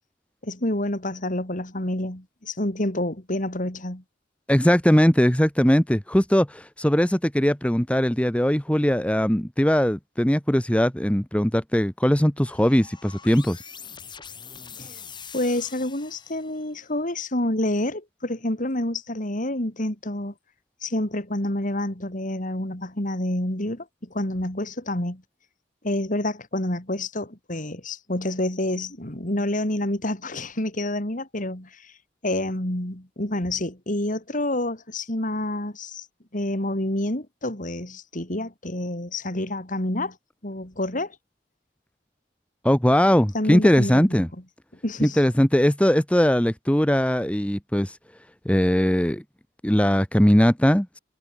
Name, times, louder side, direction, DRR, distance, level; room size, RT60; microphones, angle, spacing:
voice 1, 0.4-4.0 14.8-15.0 15.3-20.3 20.8-25.2 25.8-31.9 32.2-36.1 36.3-40.2 40.4-41.2 43.3-44.2 44.8-45.2, left 1 dB, 45° left, 3.6 m, -28 dB
voice 2, 4.5-13.6 42.6-44.3 45.0-48.0 48.4-49.2 49.6-51.0, equal, 5° left, 1.2 m, -20 dB
sound 1, 12.5-16.8, left 6 dB, 25° left, 3.1 m, -43 dB
head